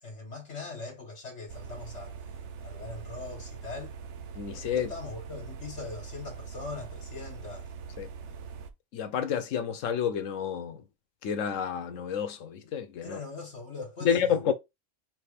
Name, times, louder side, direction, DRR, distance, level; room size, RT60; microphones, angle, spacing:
voice 1, 0.0-2.2 2.6-3.9 4.7-7.7 13.0-14.4, left 3 dB, 65° left, 1.7 m, -41 dB
sound 1, 1.5-8.7, right 6 dB, 70° right, 0.9 m, -42 dB
voice 2, 4.4-4.9 8.0-8.1 8.9-10.8 11.2-13.2 14.0-14.5, left 8 dB, 85° left, 1.1 m, -29 dB
4.8 x 3.1 x 3.3 m
omnidirectional pair, 1.3 m